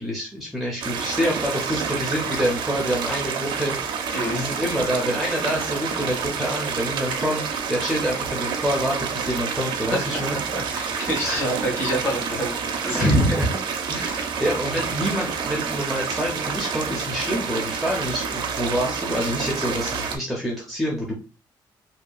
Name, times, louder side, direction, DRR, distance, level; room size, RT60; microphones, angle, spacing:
voice 1, 0.0-3.8 4.3-10.4 11.2-11.4 12.9-13.5 13.9-21.2, equal, ahead, -2 dB, 0.5 m, -26 dB
sound 1, 0.8-20.2, right 6 dB, 70° right, 0.4 m, -28 dB
voice 2, 10.1-12.5 12.8-13.0, equal, 30° left, -2 dB, 1.2 m, -28 dB
2.7 x 2.2 x 2.3 m, 0.33 s
cardioid pair, 130°, 8 cm